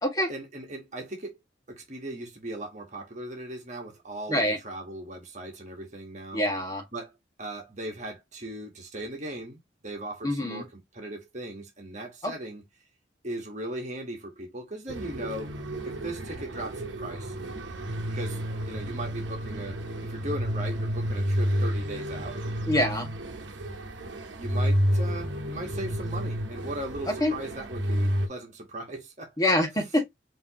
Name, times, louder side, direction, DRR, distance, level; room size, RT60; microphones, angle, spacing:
voice 1, 0.3-1.4 1.7-6.5 6.9-7.1 7.4-12.6 13.2-15.5 15.8-17.3 18.1-22.4 24.3-29.3, right 1 dB, 40° right, 1.5 m, -38 dB
voice 2, 6.3-6.8 10.2-10.7 12.2-12.3 22.7-23.1 27.1-27.3 29.4-30.0, left 1 dB, 20° left, 1.7 m, -25 dB
sound 1, 14.9-28.3, equal, 80° right, 1.0 m, -30 dB
5.4 x 3.0 x 2.9 m
head